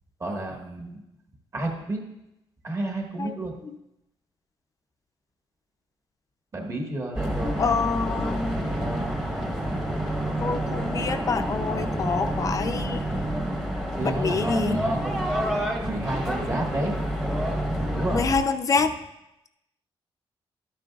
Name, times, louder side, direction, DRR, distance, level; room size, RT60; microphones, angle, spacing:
voice 1, 0.2-1.0 1.5-2.0 2.6-3.5 6.5-9.1 14.0-15.1 15.8-16.9 17.9-18.2, right 1 dB, 30° right, 1 dB, 1.5 m, -31 dB
sound 1, 7.1-18.4, equal, 5° right, 1.0 m, -28 dB
voice 2, 7.6-8.5 10.4-13.0 14.0-14.8 18.1-18.9, left 4 dB, 35° left, 8 dB, 0.5 m, -26 dB
12.5 x 9.1 x 2.4 m, 0.88 s
cardioid pair, 140°, 10 cm